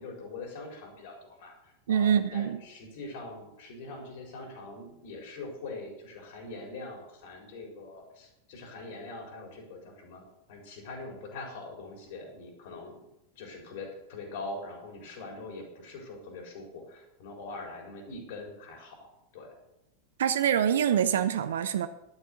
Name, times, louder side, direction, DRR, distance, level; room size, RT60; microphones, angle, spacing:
voice 1, 0.0-10.2 10.5-13.0 13.4-19.5, left 3 dB, 50° left, 2 dB, 4.1 m, -43 dB
voice 2, 1.9-2.6 20.2-21.9, right 9 dB, 60° right, 12 dB, 0.6 m, -25 dB
11.5 x 9.6 x 6.7 m, 0.88 s
figure-of-eight pair, 90°, 0 cm